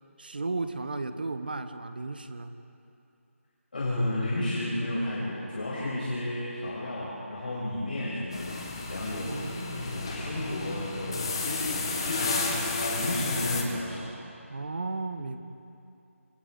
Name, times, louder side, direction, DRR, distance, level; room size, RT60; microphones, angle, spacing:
voice 1, 0.2-2.5 9.2-10.0 13.0-13.2 14.5-15.4, right 3 dB, 40° right, 10 dB, 1.0 m, -35 dB
voice 2, 3.7-8.6 8.9-9.4 9.8-14.1, left 1 dB, 45° left, -9 dB, 6.2 m, -32 dB
sound 1, 8.3-13.6, left 3 dB, 20° left, 1.4 m, -32 dB
28.5 x 26.0 x 3.9 m, 2.7 s
figure-of-eight pair, 180°, 8 cm